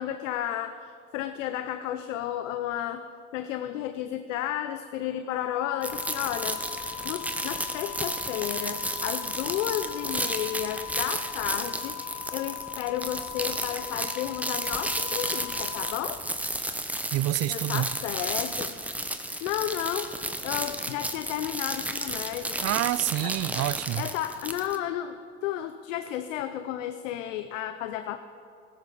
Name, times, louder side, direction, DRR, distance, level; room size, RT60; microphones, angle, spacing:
voice 1, 0.0-3.0 3.3-16.3 17.5-18.7 19.2-20.1 20.4-22.6 23.2-23.3 24.0-28.2, left 11 dB, 85° left, 10 dB, 0.6 m, -32 dB
sound 1, 5.3-16.0, left 14 dB, 40° left, 0.7 m, -40 dB
sound 2, 5.8-24.8, right 1 dB, 5° right, 1.0 m, -33 dB
voice 2, 17.1-17.9 22.6-24.1, right 15 dB, 45° right, 19 dB, 0.4 m, -27 dB
16.0 x 13.5 x 4.0 m, 2.5 s
hypercardioid pair, 80°, 37 cm